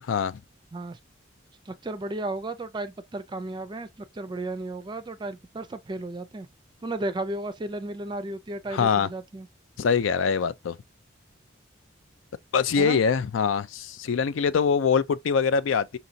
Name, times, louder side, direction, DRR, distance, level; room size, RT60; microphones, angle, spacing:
voice 1, 0.1-0.4 8.7-9.1 9.8-10.8 12.5-16.0, left 6 dB, 90° left, 0.4 m, -23 dB
voice 2, 1.7-3.9 4.1-6.5 6.8-9.5 12.8-13.0, right 2 dB, 25° right, 0.4 m, -34 dB
5.1 x 2.9 x 2.7 m
head